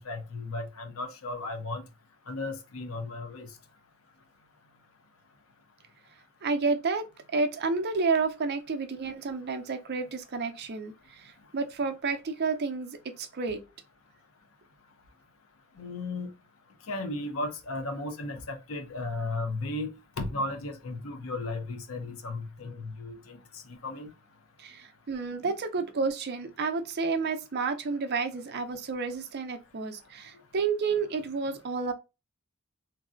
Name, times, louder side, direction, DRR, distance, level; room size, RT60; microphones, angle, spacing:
voice 1, 0.0-1.8 2.3-3.5 15.8-16.3 16.9-23.4 23.7-24.1 25.4-25.5, left 2 dB, 65° left, 0.6 m, -35 dB
voice 2, 6.4-7.1 7.3-13.6 24.6-31.9, right 4 dB, 50° right, 0.5 m, -30 dB
3.1 x 2.6 x 2.5 m
head